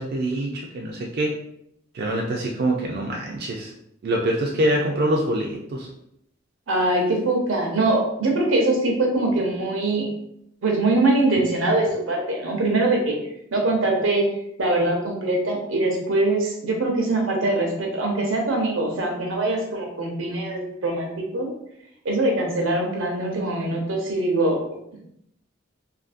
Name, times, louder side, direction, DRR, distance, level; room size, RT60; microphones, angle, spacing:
voice 1, 0.0-1.3 1.9-3.7 4.0-5.9, right 1 dB, 55° right, -1 dB, 0.3 m, -25 dB
voice 2, 6.7-10.1 10.6-13.2 13.5-14.3 14.6-21.5 22.0-24.6, right 2 dB, 85° right, 1 dB, 0.7 m, -22 dB
2.7 x 2.5 x 2.4 m, 0.76 s
head